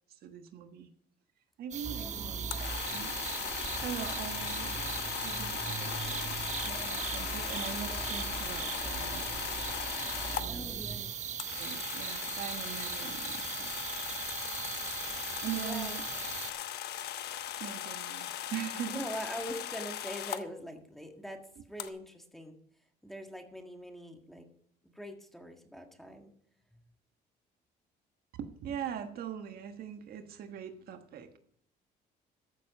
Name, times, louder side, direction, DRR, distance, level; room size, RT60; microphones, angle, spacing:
voice 1, 0.1-0.9 1.6-3.2 3.8-4.8 5.2-6.4 6.7-9.3 10.3-10.9 11.6-13.9 15.4-16.0 17.6-19.1 28.4-31.4, right 9 dB, 65° right, 7 dB, 1.4 m, -42 dB
sound 1, 1.7-16.5, right 8 dB, 45° right, 1.0 m, -39 dB
sound 2, 1.8-11.0, right 3 dB, 15° right, 1.6 m, -43 dB
voice 2, 2.0-2.4 10.5-11.1 15.6-16.0 18.9-21.4 21.7-22.6 23.0-24.5 24.8-26.3 26.7-26.8, equal, ahead, 4 dB, 1.7 m, -43 dB
sound 3, 2.4-10.5 11.4-20.4 21.8-21.9, left 11 dB, 75° left, 1.0 m, -38 dB
14.5 x 7.3 x 4.9 m, 0.64 s
cardioid pair, 110°, 17 cm